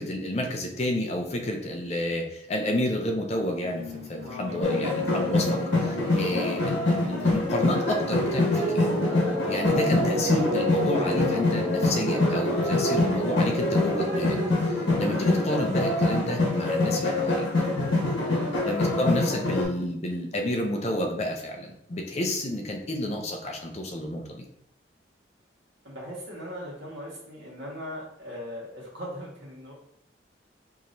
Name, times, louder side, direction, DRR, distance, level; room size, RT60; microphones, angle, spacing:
voice 1, 0.0-8.9 9.5-14.4 14.7-17.4 18.6-24.4, left 1 dB, 35° left, 3 dB, 0.5 m, -30 dB
sound 1, 3.5-16.1, right 1 dB, 35° right, 0.5 m, -33 dB
voice 2, 4.2-4.7 18.2-18.6 25.8-29.7, equal, 80° right, -4 dB, 1.6 m, -39 dB
sound 2, 4.6-19.6, left 2 dB, 75° left, 1.2 m, -25 dB
4.8 x 2.9 x 2.6 m, 0.74 s
head